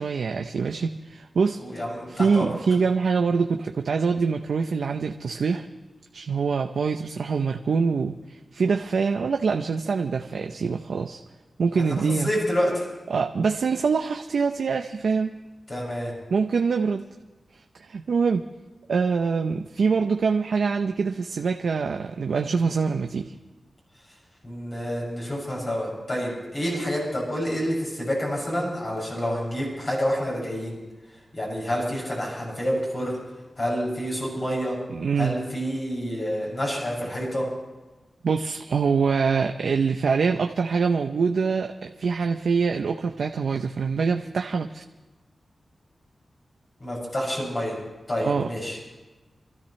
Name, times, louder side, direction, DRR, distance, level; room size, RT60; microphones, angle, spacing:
voice 1, 0.0-1.6 2.1-5.7 6.1-11.2 11.6-12.3 13.1-15.3 16.3-17.0 17.8-18.4 18.9-23.3 34.9-35.3 38.2-44.8 48.2-48.5, right 5 dB, 85° right, 5 dB, 0.7 m, -24 dB
voice 2, 1.6-2.5 11.7-12.9 15.7-16.1 24.4-30.8 31.3-33.1 33.6-34.8 35.2-37.4 46.8-47.8 48.1-48.8, equal, 45° left, -5 dB, 6.6 m, -28 dB
28.5 x 13.5 x 3.2 m, 1.2 s
wide cardioid pair, 85°, 0 cm